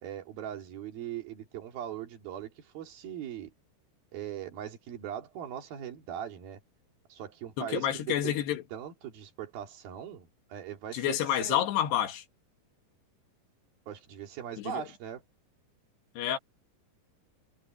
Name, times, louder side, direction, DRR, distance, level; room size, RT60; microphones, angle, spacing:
voice 1, 0.0-3.5 4.1-6.6 7.1-8.4 8.7-11.6 13.9-15.2, right 10 dB, 65° right, 4.3 m, -40 dB
voice 2, 7.6-8.6 10.9-12.2 14.6-14.9 16.2-16.4, left 11 dB, 90° left, 3.9 m, -29 dB
omnidirectional pair, 4.7 m